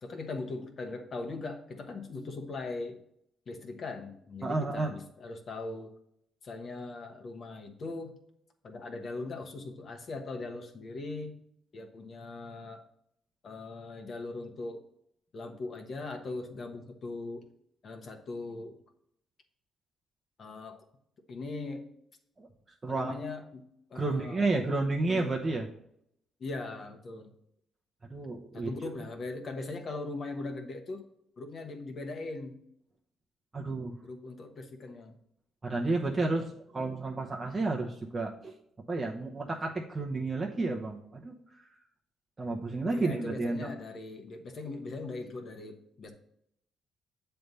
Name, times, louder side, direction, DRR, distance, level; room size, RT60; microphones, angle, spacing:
voice 1, 0.0-3.0 3.5-5.9 6.4-8.2 8.6-11.4 11.7-12.8 13.4-14.8 15.3-17.5 17.8-18.8 20.4-20.8 21.3-21.8 22.9-23.6 23.9-24.6 25.0-25.4 26.4-27.3 28.5-31.0 31.4-32.6 34.0-35.2 42.9-46.1, left 3 dB, 50° left, 4 dB, 1.2 m, -40 dB
voice 2, 4.4-4.9 22.4-22.5 22.8-23.1 23.9-25.7 28.1-28.7 33.5-34.0 35.6-38.5 38.9-41.6 42.4-43.7, right 3 dB, 25° right, -1 dB, 0.9 m, -31 dB
7.7 x 3.4 x 5.4 m, 0.73 s
cardioid pair, 80°, 0 cm